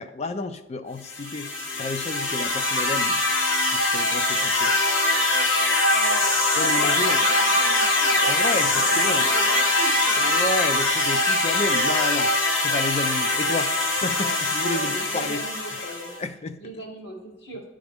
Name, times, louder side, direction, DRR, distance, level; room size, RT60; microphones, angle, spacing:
voice 1, 0.0-1.5 1.8-3.2 3.7-4.8 6.6-7.2 8.3-9.3 10.1-12.3 12.6-15.4 15.8-16.6, left 3 dB, 35° left, 10 dB, 0.4 m, -31 dB
sound 1, 1.1-16.2, left 2 dB, 85° left, 1.1 m, -22 dB
voice 2, 5.9-6.3 6.7-8.4 8.8-10.4 14.1-14.4 14.7-16.1 16.6-17.6, equal, 65° left, -2 dB, 1.9 m, -38 dB
10.5 x 3.8 x 3.5 m, 0.98 s
head